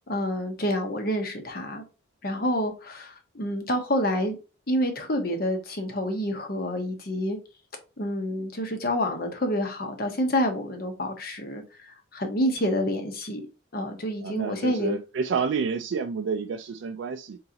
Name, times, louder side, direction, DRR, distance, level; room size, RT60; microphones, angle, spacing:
voice 1, 0.1-1.8 2.2-4.4 4.7-7.4 8.0-13.4 13.7-15.0, equal, 50° left, 1.0 m, -28 dB
voice 2, 14.2-17.4, right 5 dB, 65° right, 0.3 m, -29 dB
3.9 x 3.8 x 2.8 m
head